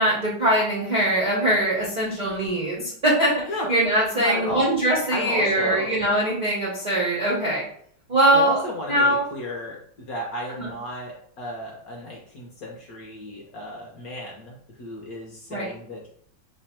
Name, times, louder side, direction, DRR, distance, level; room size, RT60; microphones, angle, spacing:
voice 1, 0.0-3.3 3.7-7.6 8.1-8.6 8.9-9.3 10.6-10.7 15.5-15.7, right 1 dB, 75° right, -6 dB, 0.4 m, -22 dB
voice 2, 4.2-4.6 5.1-5.9 8.3-16.1, left 1 dB, 65° left, -2 dB, 0.9 m, -33 dB
3.2 x 2.2 x 4.2 m, 0.62 s
omnidirectional pair, 2.2 m